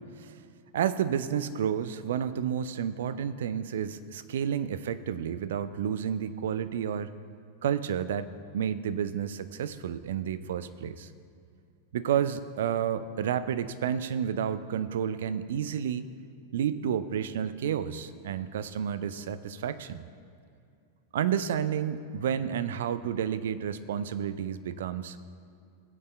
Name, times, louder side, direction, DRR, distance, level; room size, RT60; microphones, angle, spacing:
voice 1, 0.7-7.1 7.6-8.3 8.5-11.1 11.9-16.0 16.5-20.0 21.1-25.2, right 8 dB, 60° right, 13 dB, 0.4 m, -30 dB
18.0 x 8.2 x 2.3 m, 2.4 s
figure-of-eight pair, 90°, 0 cm